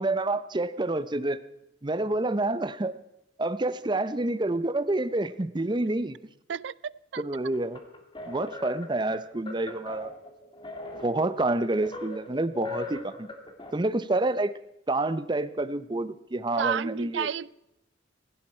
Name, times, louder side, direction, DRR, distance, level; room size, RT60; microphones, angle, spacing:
voice 1, 0.0-1.4 1.8-2.9 3.4-6.2 7.2-7.8 8.3-10.1 10.9-13.3 13.7-14.5 14.9-17.3, right 2 dB, 25° right, 0.7 m, -28 dB
voice 2, 6.5-7.2 16.6-17.6, right 7 dB, 75° right, 0.4 m, -31 dB
sound 1, 7.5-13.7, left 2 dB, 25° left, 2.1 m, -41 dB
16.5 x 16.0 x 4.4 m
head